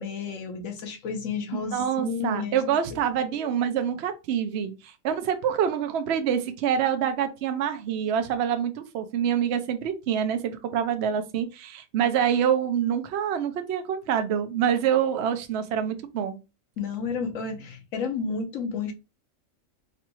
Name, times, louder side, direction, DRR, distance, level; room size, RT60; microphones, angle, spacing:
voice 1, 0.0-2.6 3.4-3.5 16.8-18.9, left 5 dB, 90° left, 1.2 m, -31 dB
voice 2, 1.7-16.4, right 8 dB, 65° right, 0.8 m, -26 dB
4.8 x 2.3 x 2.9 m
omnidirectional pair, 1.3 m